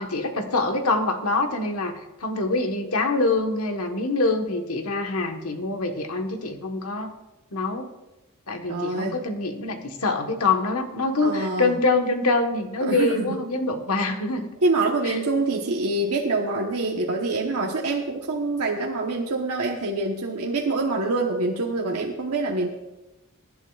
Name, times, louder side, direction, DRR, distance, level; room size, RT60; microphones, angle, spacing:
voice 1, 0.0-1.9 2.2-7.1 7.5-7.9 8.5-14.5 15.0-15.1, left 3 dB, 90° left, 5 dB, 1.3 m, -25 dB
voice 2, 8.7-9.2 11.2-11.7 12.8-13.4 14.6-22.7, right 2 dB, 85° right, -1 dB, 1.1 m, -25 dB
23.0 x 11.0 x 2.4 m, 1.0 s
head